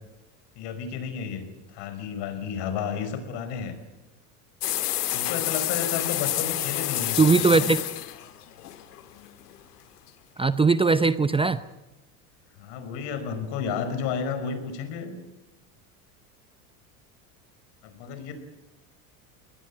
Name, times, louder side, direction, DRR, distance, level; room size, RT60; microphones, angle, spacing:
voice 1, 0.5-1.5 1.7-3.7 5.1-7.7 12.6-15.1 17.8-18.3, left 6 dB, 60° left, 10 dB, 5.2 m, -32 dB
sound 1, 4.6-9.5, left 14 dB, 85° left, 1.9 m, -29 dB
voice 2, 7.2-7.8 10.4-11.6, right 4 dB, 10° right, 14 dB, 0.7 m, -20 dB
21.5 x 19.5 x 9.5 m, 1.0 s
hypercardioid pair, 85°, 46 cm